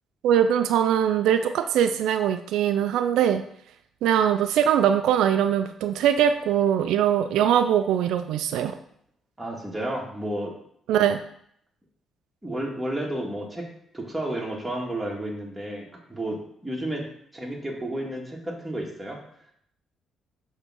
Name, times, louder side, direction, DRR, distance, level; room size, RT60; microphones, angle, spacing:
voice 1, 0.2-3.4 4.0-8.7 10.9-11.2, right 9 dB, 85° right, 9 dB, 0.4 m, -22 dB
voice 2, 9.4-10.6 12.4-13.7 13.9-19.2, right 1 dB, 10° right, -2 dB, 1.9 m, -32 dB
6.6 x 3.6 x 6.2 m, 0.68 s
cardioid pair, 90°, 0 cm